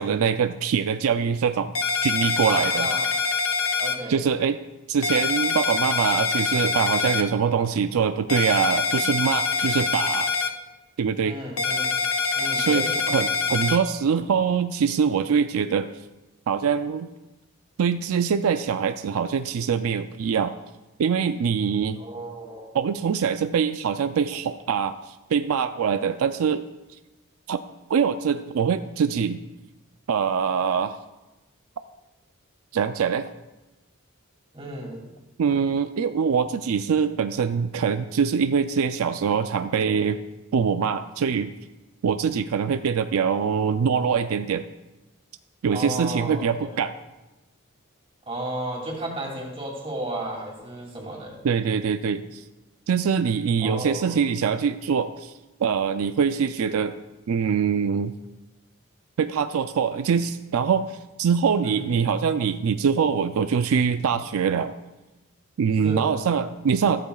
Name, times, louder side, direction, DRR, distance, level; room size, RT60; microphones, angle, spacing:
voice 1, 0.0-1.7 2.0-2.9 4.1-4.6 4.9-10.3 11.0-11.4 12.6-15.9 16.5-17.1 17.8-20.5 21.0-22.0 22.7-26.7 27.5-27.6 27.9-29.4 30.1-31.0 32.7-33.3 35.4-40.2 40.5-41.5 42.0-44.7 45.6-46.9 51.4-52.4 52.9-55.3 55.6-56.9 57.3-58.1 59.2-64.7 65.6-67.0, right 6 dB, 80° right, 10 dB, 0.4 m, -23 dB
sound 1, 1.8-4.0 5.0-7.2 8.3-10.5 11.6-13.8, left 4 dB, 70° left, 0.8 m, -25 dB
voice 2, 2.4-3.0 3.8-4.3 11.2-11.9 12.3-13.0 22.0-22.7 34.5-35.1 45.7-46.8 48.3-51.4 53.6-54.2 61.6-61.8 65.8-66.1, right 1 dB, 25° right, -2 dB, 2.6 m, -33 dB
14.5 x 13.0 x 2.3 m, 1.1 s
head